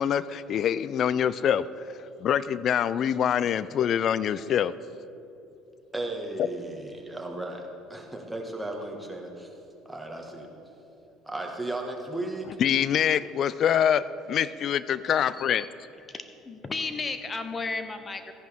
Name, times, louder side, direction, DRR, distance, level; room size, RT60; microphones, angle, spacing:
voice 1, 0.0-4.7 6.4-6.5 12.6-15.7, left 9 dB, 55° left, 17 dB, 0.3 m, -25 dB
voice 2, 5.9-9.5 9.9-10.5 11.3-12.5, right 2 dB, 10° right, 1 dB, 1.7 m, -35 dB
voice 3, 15.4-15.7 16.1-18.3, left 3 dB, 30° left, 9 dB, 0.9 m, -34 dB
14.0 x 10.5 x 3.6 m, 2.8 s
hypercardioid pair, 75°, 0 cm